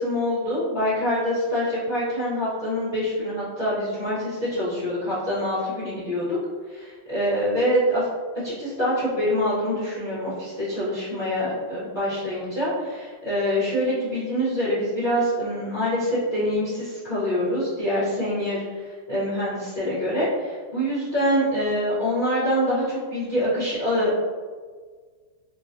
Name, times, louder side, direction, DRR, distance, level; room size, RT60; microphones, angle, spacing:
voice 1, 0.0-6.4 6.7-8.1 8.4-24.2, equal, 45° left, -11 dB, 0.6 m, -25 dB
3.7 x 2.1 x 2.6 m, 1.5 s
omnidirectional pair, 2.3 m